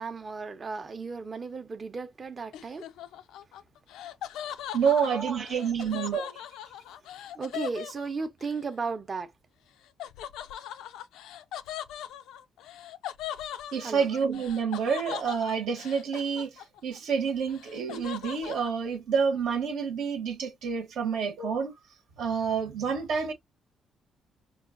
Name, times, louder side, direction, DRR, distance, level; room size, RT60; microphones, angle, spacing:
voice 1, 0.0-2.9 5.1-5.9 7.3-9.3 13.8-14.1 21.0-21.1, right 4 dB, 35° right, 0.6 m, -35 dB
Laughter, 2.5-8.6 10.0-17.0 17.3-18.7, left 11 dB, 90° left, 0.3 m, -40 dB
voice 2, 4.7-6.4 13.7-21.7 22.2-23.3, right 6 dB, 80° right, 1.0 m, -28 dB
5.4 x 2.3 x 2.5 m
cardioid pair, 90°, 0 cm